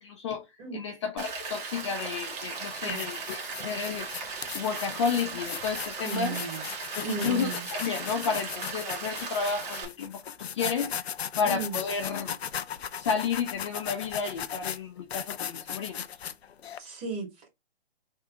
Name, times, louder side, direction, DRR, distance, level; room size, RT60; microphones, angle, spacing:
voice 1, 0.0-0.4 0.7-4.3 4.5-6.4 6.9-11.1 11.4-12.4 13.0-16.0, left 6 dB, 30° left, 0.5 m, -31 dB
Rain, 1.2-9.8, right 4 dB, 40° right, 1.7 m, -37 dB
sound 1, 2.0-2.1 2.7-16.8, left 8 dB, 90° left, 0.5 m, -38 dB
voice 2, 6.0-6.6 7.0-7.7 11.4-11.8 16.8-17.5, right 5 dB, 20° right, 1.3 m, -35 dB
3.6 x 2.7 x 4.7 m
hypercardioid pair, 145°, 31 cm